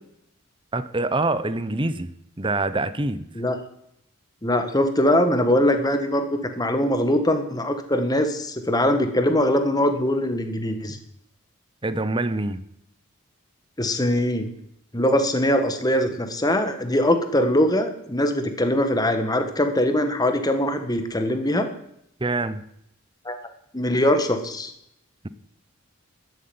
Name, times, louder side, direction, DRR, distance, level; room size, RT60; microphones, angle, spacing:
voice 1, 0.7-2.1 2.4-3.2 11.8-12.6 22.2-22.6, right 2 dB, 25° right, 0.8 m, -25 dB
voice 2, 4.4-11.0 13.8-14.5 14.9-21.7 23.3-23.4 23.7-24.7, left 1 dB, 20° left, 1.6 m, -22 dB
13.0 x 8.0 x 9.5 m
head